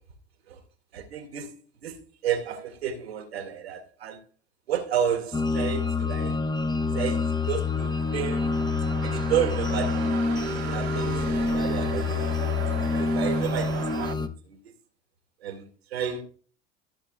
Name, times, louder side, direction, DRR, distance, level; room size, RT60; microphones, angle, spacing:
voice 1, 0.9-1.5 1.8-4.2 4.7-6.4 6.9-8.5 9.0-12.3 12.7-14.7 15.4-16.2, right 8 dB, 85° right, 2.1 m, -32 dB
sound 1, 5.3-14.3, left 4 dB, 15° left, 1.0 m, -27 dB
sound 2, 6.2-14.1, right 10 dB, 55° right, 1.3 m, -37 dB
14.5 x 7.2 x 2.3 m
hypercardioid pair, 70°, 30 cm